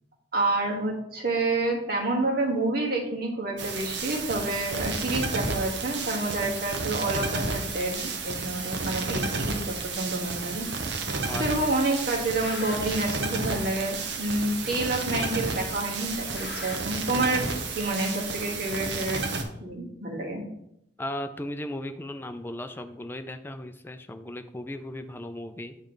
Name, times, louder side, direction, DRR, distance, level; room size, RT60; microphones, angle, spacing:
voice 1, 0.3-10.7 11.4-17.4 17.7-19.2 19.6-20.4, right 2 dB, 55° right, -1 dB, 1.5 m, -28 dB
sound 1, 3.6-19.4, right 4 dB, 75° right, 0.8 m, -32 dB
sound 2, 8.9-9.0 9.9-10.0 10.9-11.3 11.6-13.1 13.9-14.0 14.9-15.3 15.6-16.8, left 4 dB, 70° left, 0.7 m, -43 dB
voice 2, 21.0-25.8, left 1 dB, 10° left, 8 dB, 0.4 m, -36 dB
8.8 x 3.2 x 3.8 m, 0.79 s
head